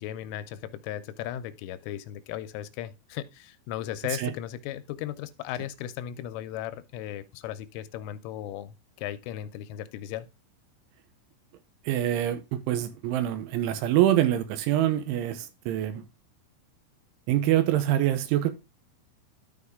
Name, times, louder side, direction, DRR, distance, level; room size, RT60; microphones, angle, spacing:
voice 1, 0.0-10.3, left 12 dB, 85° left, 3.1 m, -36 dB
voice 2, 11.9-16.0 17.3-18.5, right 12 dB, 80° right, 3.1 m, -25 dB
13.0 x 4.8 x 3.5 m
omnidirectional pair, 5.7 m